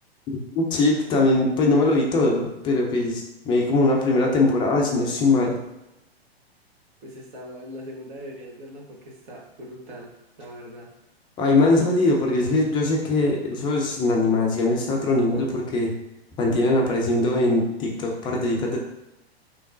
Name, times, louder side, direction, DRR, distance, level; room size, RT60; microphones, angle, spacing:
voice 1, 0.5-5.6 11.4-15.9 16.4-18.8, left 2 dB, 15° left, 0 dB, 0.4 m, -21 dB
voice 2, 7.0-10.1 10.4-10.9, equal, 50° right, -1 dB, 1.1 m, -40 dB
3.4 x 3.1 x 2.6 m, 0.92 s
figure-of-eight pair, 105°, 31 cm